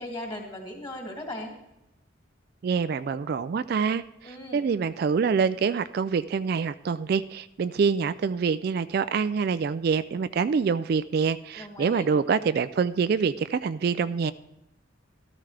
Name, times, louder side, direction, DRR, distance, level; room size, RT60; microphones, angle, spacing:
voice 1, 0.0-1.5 4.2-4.7 11.5-12.1, left 1 dB, 25° left, 1 dB, 2.3 m, -38 dB
voice 2, 2.6-14.3, right 5 dB, 50° right, 13 dB, 0.3 m, -26 dB
14.0 x 13.0 x 3.3 m, 0.88 s
head